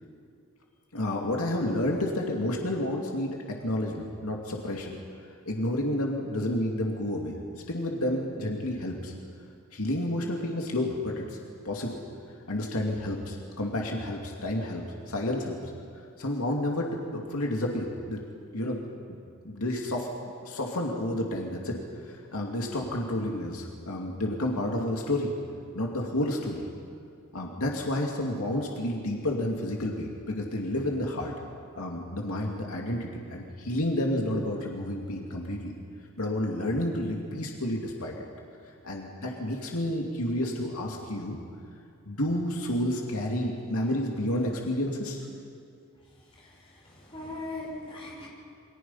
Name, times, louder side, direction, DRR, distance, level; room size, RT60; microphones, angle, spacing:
voice 1, 0.9-4.9 5.5-7.4 7.7-9.1 9.7-11.4 11.6-12.0 12.5-15.6 16.2-18.2 18.5-18.8 19.4-21.8 22.0-25.3 25.7-26.6 27.3-31.3 31.7-35.7 36.2-38.1 38.8-41.4 42.1-45.3, left 1 dB, 80° left, 0 dB, 2.5 m, -30 dB
voice 2, 46.4-48.3, left 2 dB, 25° left, -3 dB, 6.0 m, -40 dB
28.5 x 23.5 x 5.7 m, 2.4 s
head